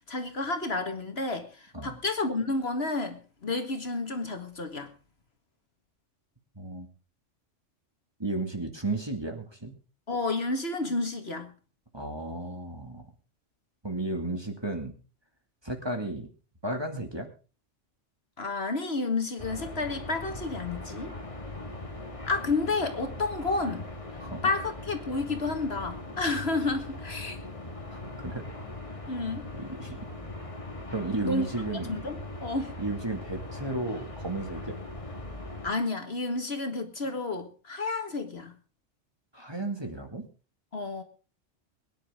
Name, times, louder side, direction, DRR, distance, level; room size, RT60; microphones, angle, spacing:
voice 1, 0.1-4.9 10.1-11.5 18.4-21.1 22.3-23.9 24.4-27.4 29.1-29.5 31.2-31.5 31.9-32.7 35.6-38.6 40.7-41.0, left 3 dB, 55° left, 2.0 m, -31 dB
voice 2, 6.6-6.9 8.2-9.8 11.9-13.0 13.8-14.9 15.6-16.3 16.6-17.3 24.2-24.5 27.9-28.4 29.5-30.1 30.9-31.9 32.8-34.8 39.3-40.2, right 2 dB, 20° right, 2.5 m, -33 dB
sound 1, 19.4-35.7, left 2 dB, 25° left, 1.9 m, -40 dB
23.5 x 10.0 x 3.7 m
omnidirectional pair, 1.2 m